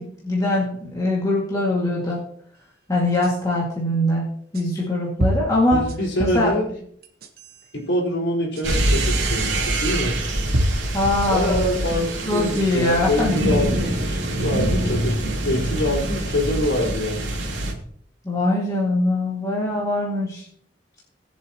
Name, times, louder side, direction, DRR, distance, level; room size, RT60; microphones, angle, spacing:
voice 1, 0.0-2.2 2.9-4.3 4.5-5.8 6.2-6.5 10.9-13.3 18.2-20.5, left 1 dB, 20° left, -5 dB, 2.2 m, -22 dB
sound 1, 3.2-3.3 4.5-4.6 5.2-6.5 7.0-7.6 8.6-8.7 9.9-10.0 10.5-11.8 12.4-12.9, equal, 55° right, 1.3 m, -26 dB
voice 2, 5.7-6.7 7.7-10.2 11.3-17.3, left 1 dB, 75° left, -2 dB, 4.4 m, -25 dB
sound 2, 8.6-17.7, right 1 dB, 80° right, 2.7 m, -24 dB
21.0 x 7.3 x 3.0 m, 0.63 s
head